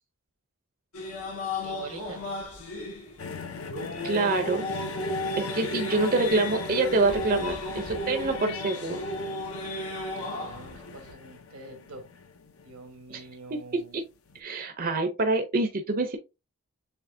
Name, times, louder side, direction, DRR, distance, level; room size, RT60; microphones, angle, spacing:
sound 1, 0.9-11.1, equal, 85° left, 2.0 m, -34 dB
voice 1, 1.6-2.4 10.1-12.1 12.6-14.0, right 2 dB, 85° right, 1.4 m, -45 dB
sound 2, 3.2-13.4 14.3-14.4, left 5 dB, 70° left, 0.7 m, -40 dB
voice 2, 4.0-4.7 5.4-9.0 13.1-14.0 14.3-16.2, right 3 dB, 40° right, 0.6 m, -26 dB
6.8 x 2.9 x 2.7 m
head